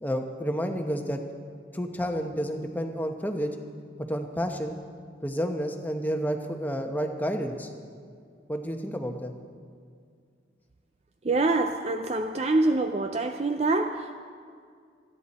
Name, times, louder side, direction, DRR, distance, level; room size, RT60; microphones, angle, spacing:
voice 1, 0.0-1.2 1.7-3.5 4.1-4.7 5.2-7.7 8.5-9.3, equal, 10° left, 0.9 m, -30 dB
voice 2, 11.2-14.2, right 2 dB, 35° right, 0.5 m, -25 dB
27.0 x 10.5 x 4.2 m
head